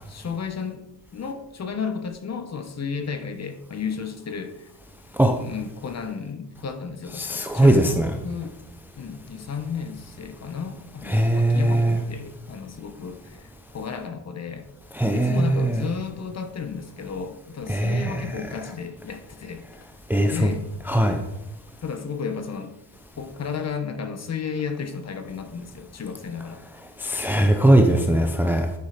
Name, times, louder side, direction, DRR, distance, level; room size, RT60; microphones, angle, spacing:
voice 1, 0.1-0.8 1.1-4.7 5.3-8.0 8.2-8.6 9.0-14.7 15.1-19.6 20.2-20.7 21.8-22.8 23.2-26.6, left 6 dB, 35° left, 8 dB, 1.2 m, -33 dB
voice 2, 7.1-8.2 11.0-12.0 14.9-15.9 17.7-18.5 20.1-20.5 20.8-21.2 27.0-28.7, right 1 dB, 5° right, 4 dB, 0.7 m, -20 dB
10.0 x 9.5 x 5.1 m, 0.91 s
cardioid pair, 165°, 47 cm